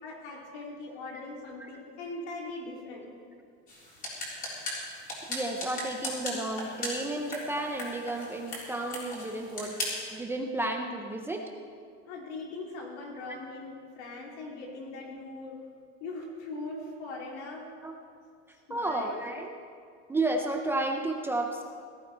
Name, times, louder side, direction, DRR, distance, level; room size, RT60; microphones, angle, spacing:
voice 1, 0.0-3.1 12.1-15.6 16.0-17.7 18.7-19.2, left 2 dB, 80° left, -2 dB, 3.9 m, -40 dB
sound 1, 3.7-10.1, left 1 dB, 25° left, 3.9 m, -38 dB
voice 2, 5.3-9.8 10.1-11.4 17.8-17.9 18.7-19.6 20.1-21.6, right 2 dB, 5° right, 2 dB, 0.5 m, -32 dB
18.5 x 12.5 x 4.5 m, 2.3 s
supercardioid pair, 165°, 34 cm